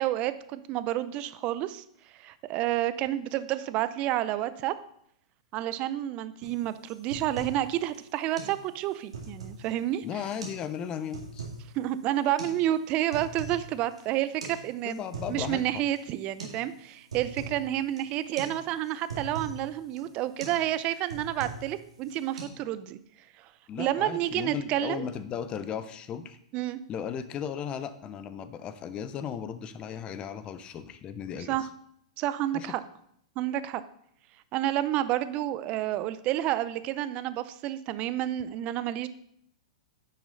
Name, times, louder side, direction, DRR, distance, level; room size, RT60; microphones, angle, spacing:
voice 1, 0.0-1.8 2.1-4.7 5.5-10.0 11.7-15.0 15.3-23.0 23.4-23.5 23.8-25.0 26.5-26.8 31.5-31.6 32.2-32.8 33.4-33.8 34.5-39.1, right 13 dB, 40° right, 14 dB, 0.6 m, -30 dB
sound 1, 6.4-6.6 6.9-7.6 7.9-8.0 8.4-8.6 8.9-9.7 10.3-10.6 10.9-11.6 12.4-12.5 12.9-13.6 13.9-14.0 14.4-14.6 14.9-15.6 16.0-16.1 16.4-16.6 16.9-17.6 18.0-18.1 18.4-18.6 18.8-19.6 20.0-20.1 20.4-20.6 20.9-21.7 22.0-22.4, right 3 dB, 85° right, 2.2 m, -40 dB
voice 2, 10.0-11.5 14.8-15.8 23.7-26.4 26.9-31.6 32.5-32.7, left 8 dB, 30° left, 12 dB, 0.7 m, -36 dB
9.9 x 6.3 x 4.0 m, 0.68 s
hypercardioid pair, 110°, 3 cm